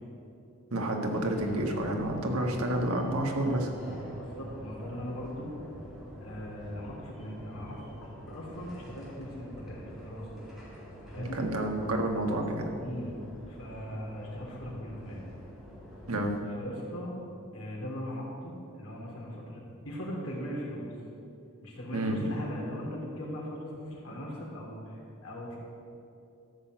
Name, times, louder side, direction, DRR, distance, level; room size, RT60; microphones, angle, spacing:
voice 1, 0.7-3.7 11.2-12.7 16.1-16.4 21.9-22.3, right 1 dB, 85° right, 2 dB, 1.5 m, -29 dB
sound 1, 1.1-16.4, equal, ahead, 2.7 m, -46 dB
voice 2, 4.1-5.5 6.2-10.3 11.1-11.4 12.8-13.2 13.5-15.2 16.6-17.2 17.5-20.9 21.6-25.6, equal, 85° left, -3 dB, 3.1 m, -39 dB
13.5 x 5.9 x 7.7 m, 2.7 s
head